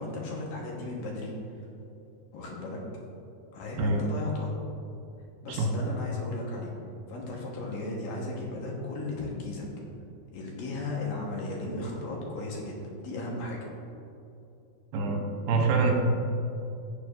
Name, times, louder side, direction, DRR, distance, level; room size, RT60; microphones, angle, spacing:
voice 1, 0.0-1.7 2.3-2.8 3.5-4.5 5.4-6.7 7.1-9.7 10.3-13.6, left 2 dB, 65° left, -2 dB, 2.8 m, -35 dB
voice 2, 15.5-15.9, right 3 dB, 80° right, 1 dB, 3.0 m, -25 dB
16.5 x 6.8 x 2.6 m, 2.7 s
omnidirectional pair, 4.6 m